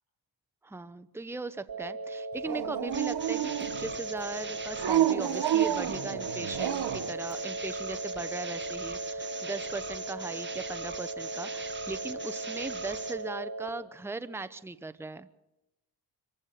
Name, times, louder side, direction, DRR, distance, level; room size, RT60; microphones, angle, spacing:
voice 1, 0.6-3.5 3.8-15.3, right 3 dB, 5° right, 12 dB, 0.8 m, -38 dB
sound 1, 1.7-13.7, right 2 dB, 45° right, 4.1 m, -38 dB
Dog, 2.4-3.9 4.8-7.1, right 11 dB, 65° right, 1.2 m, -29 dB
sound 2, 2.9-13.2, right 4 dB, 25° right, 1.7 m, -42 dB
25.0 x 15.5 x 6.7 m, 0.98 s
cardioid pair, 90°, 43 cm